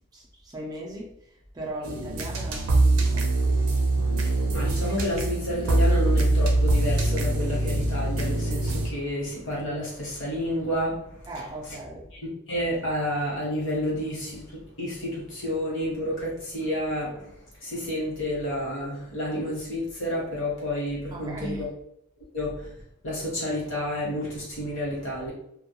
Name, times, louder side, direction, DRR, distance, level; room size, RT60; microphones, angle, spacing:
voice 1, 0.1-1.1 1.5-3.3 11.3-12.1 21.1-21.7, right 1 dB, 20° right, -3 dB, 0.4 m, -37 dB
sound 1, 1.8-8.9, right 2 dB, 85° right, 0.5 m, -23 dB
voice 2, 4.2-11.2 12.1-12.2 12.5-17.3 17.6-21.7 22.3-22.7 23.0-25.3, equal, 65° left, -5 dB, 1.1 m, -30 dB
2.2 x 2.1 x 2.9 m, 0.75 s
head